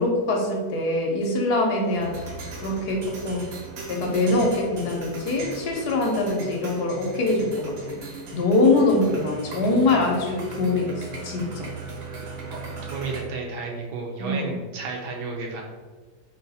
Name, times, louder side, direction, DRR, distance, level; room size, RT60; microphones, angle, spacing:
voice 1, 0.0-2.3 2.6-3.5 3.9-8.0 8.3-11.7 14.2-14.6, left 2 dB, 70° left, 0 dB, 1.1 m, -23 dB
sound 1, 1.9-13.2, right 3 dB, 60° right, 1.1 m, -38 dB
voice 2, 12.5-15.6, right 3 dB, 75° right, 0 dB, 1.3 m, -32 dB
4.0 x 2.3 x 4.0 m, 1.4 s
omnidirectional pair, 1.9 m